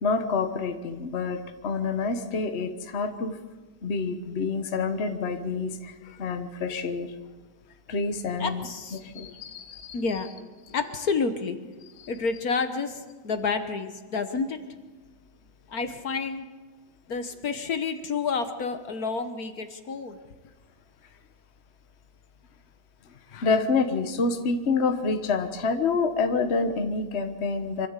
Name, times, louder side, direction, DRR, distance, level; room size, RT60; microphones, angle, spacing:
voice 1, 0.0-3.4 3.8-7.1 7.9-10.0 12.0-12.1 23.3-27.9, left 4 dB, 40° left, 7 dB, 1.4 m, -28 dB
voice 2, 8.4-9.0 9.3-9.4 9.9-11.6 12.1-14.6 15.7-16.5 17.1-20.2, left 4 dB, 60° left, 8 dB, 1.6 m, -29 dB
25.0 x 14.0 x 8.2 m, 1.3 s
omnidirectional pair, 1.9 m